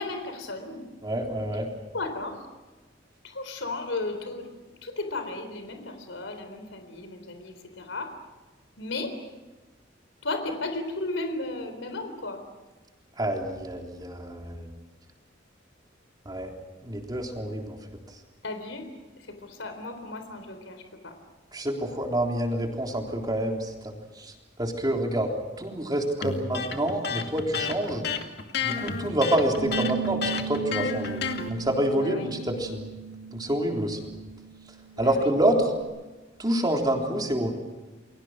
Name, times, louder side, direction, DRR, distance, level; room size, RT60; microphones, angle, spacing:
voice 1, 0.0-0.9 1.9-2.5 3.2-4.5 4.8-8.1 8.8-9.2 10.2-12.4 18.4-18.9 19.2-21.1 31.9-32.3 34.9-35.3, left 2 dB, 90° left, 7 dB, 3.9 m, -34 dB
voice 2, 1.0-1.7 13.2-14.7 16.3-16.5 16.8-17.8 21.5-24.3 24.6-25.3 25.6-28.0 28.6-31.2 31.5-32.8 33.3-34.0 35.0-35.7 36.4-37.5, right 1 dB, 20° right, 1 dB, 3.7 m, -27 dB
Electric guitar, 26.2-31.5, left 6 dB, 60° left, 2.4 m, -31 dB
Bass guitar, 29.6-35.8, right 7 dB, 65° right, 4.5 m, -37 dB
30.0 x 23.0 x 6.4 m, 1.2 s
head